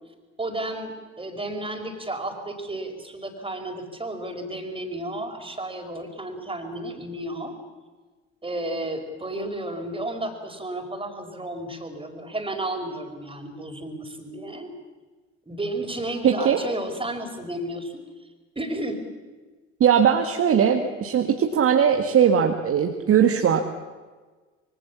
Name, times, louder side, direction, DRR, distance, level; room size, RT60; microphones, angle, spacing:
voice 1, 0.4-7.6 8.4-14.7 15.5-18.1 18.6-19.0, right 1 dB, 15° right, 5 dB, 5.1 m, -32 dB
voice 2, 16.2-16.6 19.8-23.6, right 8 dB, 40° right, 4 dB, 2.0 m, -19 dB
26.5 x 23.5 x 7.3 m, 1.3 s
figure-of-eight pair, 55°, 36 cm